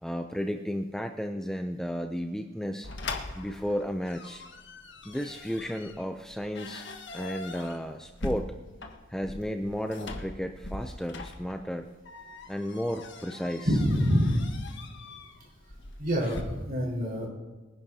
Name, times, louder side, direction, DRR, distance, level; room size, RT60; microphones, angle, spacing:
voice 1, 0.0-2.9 3.3-4.4 5.0-8.5 9.1-11.9 12.5-13.7, equal, 5° left, 5 dB, 0.4 m, -33 dB
sound 1, 2.8-16.4, left 2 dB, 60° left, 1.5 m, -42 dB
voice 2, 13.6-14.6 16.0-17.3, equal, 45° right, -2 dB, 4.6 m, -26 dB
24.0 x 10.5 x 2.8 m, 1.2 s
head